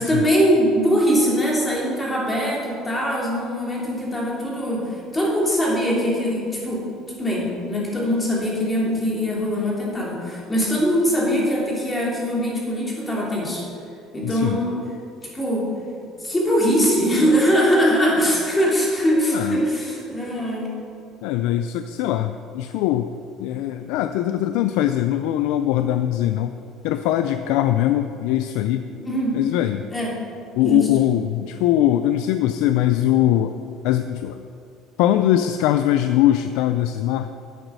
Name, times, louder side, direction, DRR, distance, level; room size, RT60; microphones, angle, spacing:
voice 1, 0.0-6.8 7.2-13.6 14.1-14.8 15.3-15.7 16.2-20.7 28.9-29.4 29.9-30.1 30.6-30.9, equal, 15° left, -4 dB, 2.9 m, -22 dB
voice 2, 14.2-14.6 19.3-19.6 21.2-23.1 23.4-26.5 26.8-28.9 29.3-29.9 30.6-33.6 33.8-34.4 35.0-37.3, left 12 dB, 85° left, 9 dB, 0.4 m, -21 dB
11.0 x 8.1 x 6.2 m, 2.5 s
cardioid pair, 155°, 0 cm